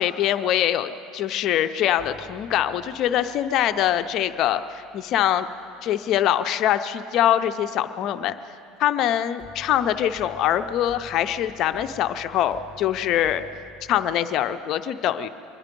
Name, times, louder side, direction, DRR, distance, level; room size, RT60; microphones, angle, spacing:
voice 1, 0.0-5.5 5.8-8.3 8.8-13.4 13.9-15.3, left 11 dB, 50° left, 10 dB, 0.5 m, -23 dB
sound 1, 1.9-7.0 9.4-14.1, left 4 dB, 5° left, 3.4 m, -50 dB
24.5 x 11.0 x 5.2 m, 2.7 s
supercardioid pair, 125°, 0 cm